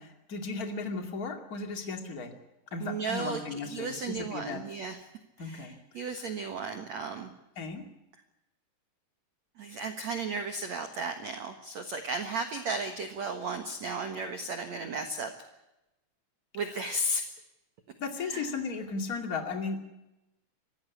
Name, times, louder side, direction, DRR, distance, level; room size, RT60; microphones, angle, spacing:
voice 1, 0.0-2.3 2.7-4.6 5.4-5.8 7.5-7.8 18.0-19.9, left 4 dB, 35° left, 5 dB, 1.4 m, -35 dB
voice 2, 2.8-5.0 5.4-7.3 9.6-15.3 16.5-17.3 18.2-18.5, right 3 dB, 85° right, 7 dB, 1.5 m, -35 dB
25.0 x 15.5 x 8.5 m, 0.95 s
omnidirectional pair, 5.7 m